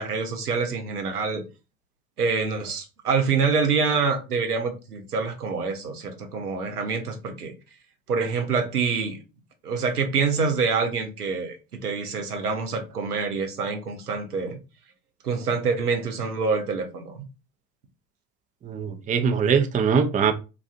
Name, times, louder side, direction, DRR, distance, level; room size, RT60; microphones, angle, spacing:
voice 1, 0.0-1.4 2.2-7.5 8.1-9.2 9.6-11.6 11.8-14.6 15.2-17.2, right 5 dB, 90° right, 0.8 m, -26 dB
voice 2, 18.6-20.3, right 6 dB, 20° right, 0.5 m, -22 dB
3.8 x 2.5 x 2.4 m
figure-of-eight pair, 70°, 44 cm